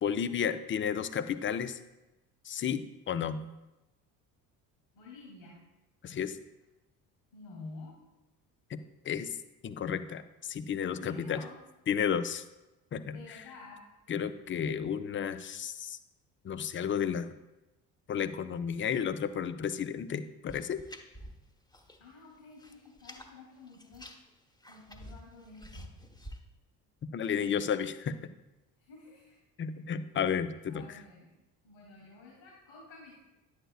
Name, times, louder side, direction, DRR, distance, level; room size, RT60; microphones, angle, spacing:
voice 1, 0.0-1.8 2.4-3.4 6.0-6.4 8.7-9.3 9.6-11.4 11.9-12.4 12.9-13.4 14.1-16.0 16.4-17.3 18.1-20.8 27.1-28.3 29.6-30.8, left 8 dB, 25° left, 12 dB, 0.5 m, -32 dB
voice 2, 4.9-5.6 7.3-8.0 11.0-11.6 13.1-13.8 22.0-24.1 24.7-26.0 28.8-29.4 30.7-31.3 31.6-33.2, left 3 dB, 75° left, -2 dB, 2.7 m, -50 dB
sound 1, 20.5-22.1 22.3-23.3 23.7-26.4, equal, 10° left, 1.1 m, -49 dB
9.9 x 8.0 x 2.3 m, 1.0 s
hypercardioid pair, 55°, 48 cm